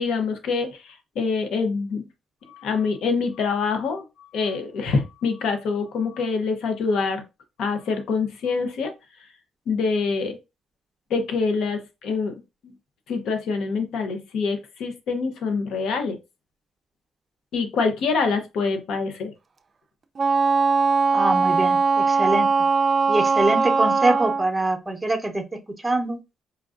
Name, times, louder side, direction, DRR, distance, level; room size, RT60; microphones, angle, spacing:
voice 1, 0.0-2.0 2.5-7.2 7.6-8.9 9.7-10.4 11.1-12.3 12.6-12.7 13.1-16.2 17.5-19.3, left 4 dB, 75° left, 0.7 m, -25 dB
Wind instrument woodwind instrument, 20.2-24.5, right 4 dB, 35° right, 0.4 m, -20 dB
voice 2, 21.1-22.5 23.1-25.4 25.8-26.2, right 2 dB, 10° right, 0.7 m, -24 dB
4.4 x 2.5 x 2.4 m
cardioid pair, 90°, 0 cm